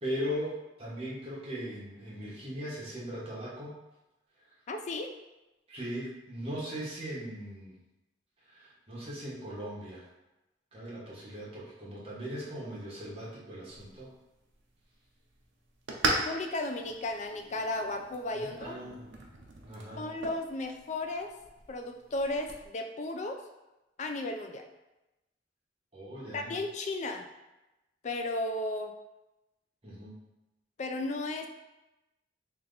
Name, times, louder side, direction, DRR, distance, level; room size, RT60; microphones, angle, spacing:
voice 1, 0.0-3.7 5.7-7.7 8.5-10.0 10.7-14.1 18.4-19.1 19.6-20.1 25.9-26.6 29.8-30.2, equal, 30° right, -7 dB, 1.1 m, -39 dB
voice 2, 4.7-5.1 16.1-18.8 20.0-21.3 21.7-23.4 24.0-24.7 26.3-27.3 28.0-28.9 30.8-31.5, left 2 dB, 40° left, 4 dB, 0.4 m, -34 dB
sound 1, 13.7-22.7, right 2 dB, 80° right, 0.6 m, -39 dB
3.3 x 2.9 x 3.9 m, 0.99 s
head